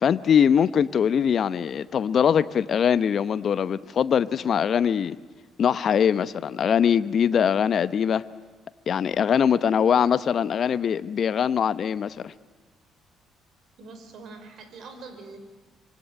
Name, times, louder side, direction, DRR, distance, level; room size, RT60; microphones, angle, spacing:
voice 1, 0.0-5.2 5.6-8.2 8.9-12.3, left 8 dB, 55° left, 0.9 m, -22 dB
voice 2, 13.8-15.4, right 4 dB, 60° right, 5.2 m, -43 dB
25.5 x 24.5 x 9.5 m
hypercardioid pair, 50°, 0 cm